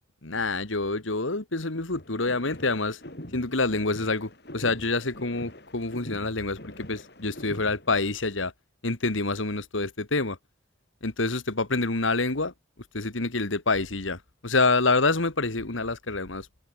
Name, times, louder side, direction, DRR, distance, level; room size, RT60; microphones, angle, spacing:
voice 1, 0.2-3.0 3.3-8.5 8.8-10.4 11.0-12.5 12.9-16.5, left 3 dB, 85° left, 2.1 m, -27 dB
sound 1, 1.9-7.9, left 1 dB, 55° left, 4.7 m, -44 dB
open air
head